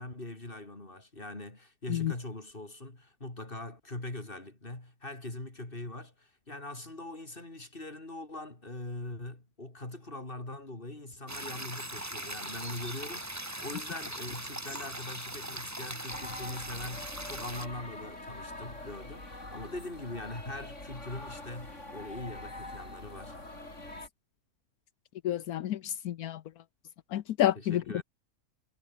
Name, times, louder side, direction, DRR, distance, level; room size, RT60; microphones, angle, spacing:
voice 1, 0.0-23.4 27.5-28.0, left 2 dB, 35° left, 4.6 m, -42 dB
sound 1, 11.3-17.7, right 1 dB, 10° right, 2.2 m, -40 dB
sound 2, 16.1-24.1, left 2 dB, 50° left, 6.3 m, -44 dB
voice 2, 25.2-26.4 27.1-28.0, left 12 dB, 80° left, 1.3 m, -29 dB
omnidirectional pair, 1.6 m